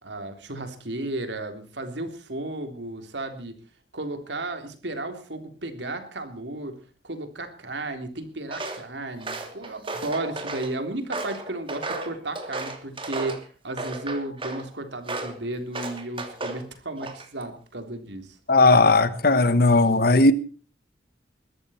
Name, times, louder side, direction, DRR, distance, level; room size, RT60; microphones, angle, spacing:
voice 1, 0.0-3.5 3.9-6.8 7.0-18.4, right 2 dB, 75° right, 3.5 m, -34 dB
Walk footsteps, 8.5-8.8 9.2-10.7 11.1-13.4 13.8-14.6 15.1-15.4 15.7-16.6 17.0-17.4, right 2 dB, 30° right, 2.8 m, -34 dB
voice 2, 18.5-20.3, left 2 dB, 55° left, 1.2 m, -17 dB
21.5 x 14.0 x 4.4 m
head